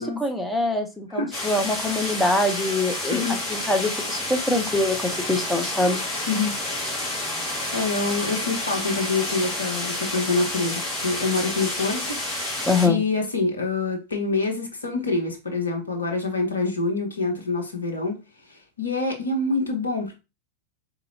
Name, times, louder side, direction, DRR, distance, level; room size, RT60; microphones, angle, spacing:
voice 1, 0.0-6.0 12.7-13.0, left 2 dB, 5° left, 0.7 m, -24 dB
sound 1, 1.3-12.9, left 1 dB, 25° left, 2.0 m, -29 dB
voice 2, 3.1-3.4 6.3-6.5 7.7-12.2 12.8-18.2 18.5-20.1, left 3 dB, 75° left, 1.1 m, -26 dB
4.0 x 2.8 x 2.7 m
figure-of-eight pair, 90°, 0 cm